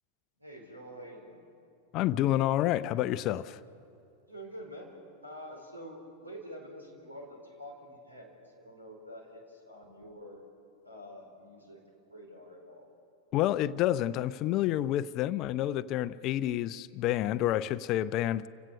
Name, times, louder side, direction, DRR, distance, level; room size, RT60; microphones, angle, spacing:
voice 1, 0.4-1.5 4.3-4.9 5.2-10.4 10.8-11.8 12.1-12.9, equal, 80° right, 4.5 m, -47 dB
voice 2, 1.9-3.6 13.3-18.5, left 13 dB, 40° left, 0.5 m, -29 dB
30.0 x 16.5 x 6.6 m
figure-of-eight pair, 90°, 0 cm